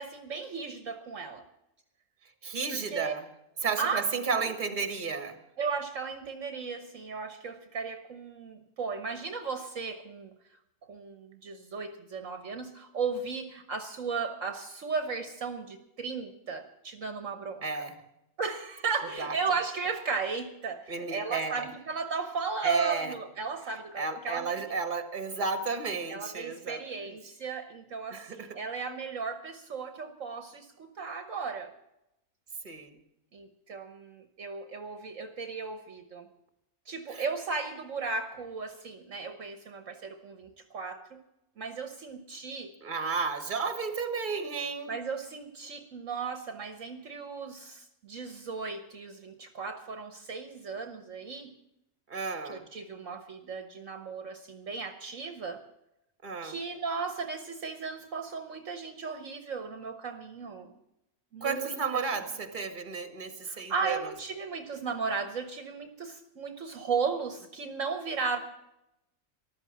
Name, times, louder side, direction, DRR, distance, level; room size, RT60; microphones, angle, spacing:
voice 1, 0.0-1.4 2.7-3.1 3.8-4.0 5.6-10.3 10.9-17.8 18.4-24.8 26.1-31.7 33.3-36.3 36.9-41.2 41.6-42.7 44.9-51.5 52.4-55.6 56.4-60.7 61.3-62.1 63.5-68.4, right 5 dB, 60° right, 8 dB, 1.5 m, -35 dB
voice 2, 2.4-3.3 3.6-5.4 17.6-18.0 19.2-19.3 20.9-21.7 22.6-23.1 23.9-27.1 28.1-28.6 32.6-33.0 37.1-37.2 42.8-44.9 52.1-52.7 56.2-56.6 61.4-64.0, right 4 dB, 35° right, 9 dB, 1.7 m, -33 dB
14.0 x 12.5 x 7.3 m, 0.86 s
omnidirectional pair, 1.5 m